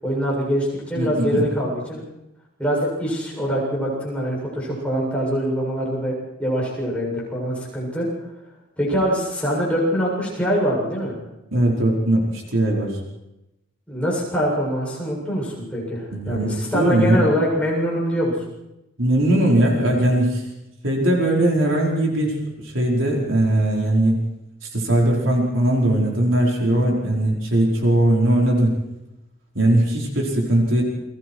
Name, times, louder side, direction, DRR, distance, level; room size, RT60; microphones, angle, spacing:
voice 1, 0.0-2.0 2.6-8.1 8.8-11.2 13.9-18.3, equal, 5° left, -5 dB, 7.5 m, -24 dB
voice 2, 0.9-1.4 11.5-12.9 16.1-17.2 19.0-20.4 20.8-22.3 22.6-24.2 24.7-28.8 29.5-30.8, right 1 dB, 65° right, -2 dB, 4.8 m, -19 dB
29.5 x 22.0 x 4.8 m, 0.93 s
head